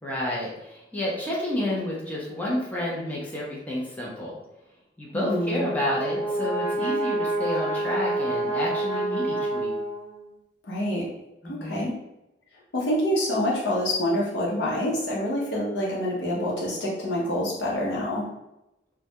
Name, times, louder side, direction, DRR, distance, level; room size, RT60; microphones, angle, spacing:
voice 1, 0.0-4.4 5.0-9.7 11.4-11.9, left 1 dB, 10° left, -6 dB, 0.5 m, -30 dB
voice 2, 5.1-5.7 10.6-11.1 11.4-11.9 12.7-18.3, equal, 75° left, -4 dB, 0.7 m, -26 dB
Brass instrument, 5.2-10.3, right 2 dB, 30° left, 1.0 m, -28 dB
2.3 x 2.1 x 2.8 m, 0.91 s
head